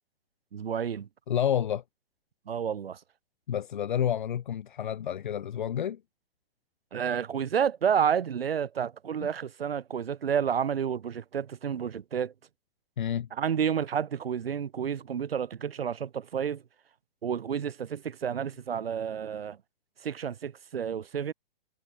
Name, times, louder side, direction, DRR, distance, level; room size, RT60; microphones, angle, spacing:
voice 1, 0.5-1.1 2.5-3.0 6.9-12.3 13.3-16.6 17.2-19.6 20.0-21.3, right 8 dB, 85° right, 7.1 m, -30 dB
voice 2, 1.3-1.8 3.5-6.0 9.2-9.3 13.0-13.3, left 9 dB, 55° left, 4.5 m, -29 dB
hypercardioid pair, 180°, 29 cm